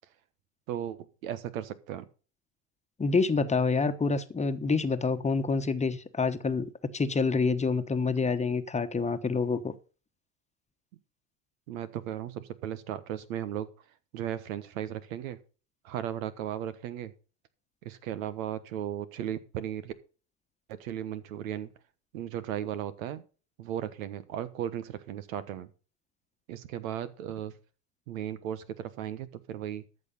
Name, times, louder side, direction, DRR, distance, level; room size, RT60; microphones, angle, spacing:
voice 1, 0.7-2.1 11.7-13.7 14.1-15.4 15.8-17.1 17.8-19.9 20.7-21.7 22.1-23.2 23.6-25.7 26.5-27.5 28.1-29.8, right 10 dB, 90° right, 1.3 m, -36 dB
voice 2, 3.0-9.7, left 4 dB, 15° left, 1.1 m, -27 dB
13.5 x 6.5 x 5.4 m
supercardioid pair, 95°, 40 cm